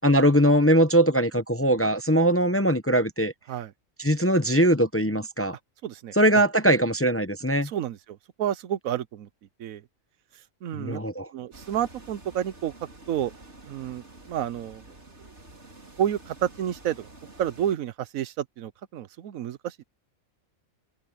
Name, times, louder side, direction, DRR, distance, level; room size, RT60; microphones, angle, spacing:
voice 1, 0.0-3.3 4.0-5.5 6.2-7.7 10.7-11.3, right 1 dB, 15° left, 0.6 m, -21 dB
voice 2, 5.8-6.4 7.6-9.3 9.6-9.8 10.6-11.0 11.3-12.7 13.1-13.3 13.6-14.8 16.0-17.1 17.4-19.8, right 10 dB, 85° right, 1.2 m, -30 dB
sound 1, 11.5-17.8, right 2 dB, 55° right, 4.4 m, -49 dB
open air
omnidirectional pair, 1.4 m